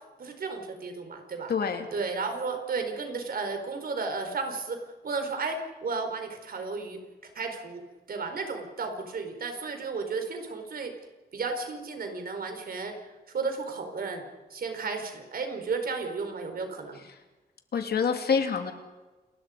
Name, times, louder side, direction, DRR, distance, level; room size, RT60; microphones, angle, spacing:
voice 1, 0.2-1.5 1.9-4.8 5.0-7.0 7.3-7.8 8.1-10.9 11.3-12.9 13.3-17.0, right 4 dB, 65° right, 5 dB, 4.7 m, -33 dB
voice 2, 1.5-1.9 17.1-17.2 17.7-18.7, left 6 dB, 75° left, 5 dB, 2.8 m, -26 dB
29.0 x 21.5 x 5.2 m, 1.2 s
wide cardioid pair, 145°, 17 cm